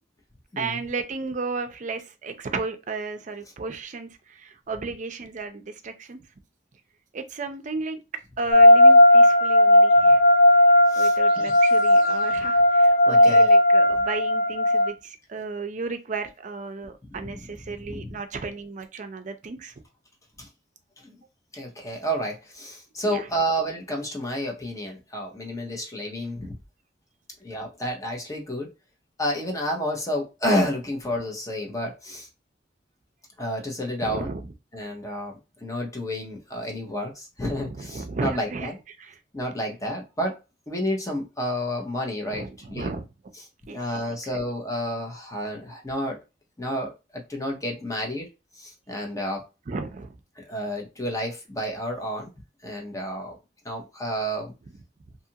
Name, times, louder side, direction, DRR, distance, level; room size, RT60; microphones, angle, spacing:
voice 1, 0.6-6.2 7.1-8.0 8.4-10.2 11.0-19.7 23.0-23.3 34.0-34.5 37.5-38.7 39.0-39.2 42.3-43.1 43.7-43.8 44.1-44.2 49.7-50.1, right 4 dB, 45° right, 0.5 m, -34 dB
sound 1, 8.5-14.9, left 1 dB, 80° left, 1.3 m, -16 dB
voice 2, 10.9-11.5 13.1-13.5 17.3-17.4 17.7-18.2 20.4-20.5 21.0-21.2 21.5-26.5 27.4-28.7 29.2-32.3 33.4-34.3 34.7-38.7 39.3-40.4 40.7-42.9 43.7-46.2 46.6-49.5 50.4-52.3 52.6-53.4 53.6-54.5, equal, 20° left, 0.7 m, -30 dB
2.7 x 2.4 x 2.8 m
head